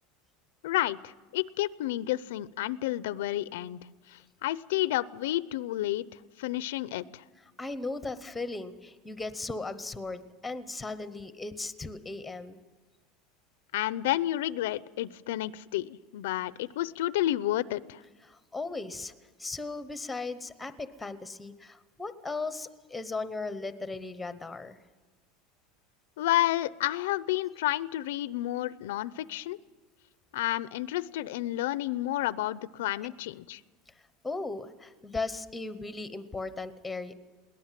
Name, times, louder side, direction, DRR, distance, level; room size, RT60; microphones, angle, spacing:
voice 1, 0.6-3.8 4.1-6.0 6.4-7.2 13.7-18.0 26.2-29.6 30.3-33.6, left 15 dB, 85° left, 18 dB, 0.6 m, -30 dB
voice 2, 7.6-12.6 18.2-19.1 19.4-24.8 34.2-37.1, left 3 dB, 5° left, 12 dB, 0.9 m, -37 dB
22.0 x 18.5 x 7.5 m, 1.4 s
supercardioid pair, 175°, 0 cm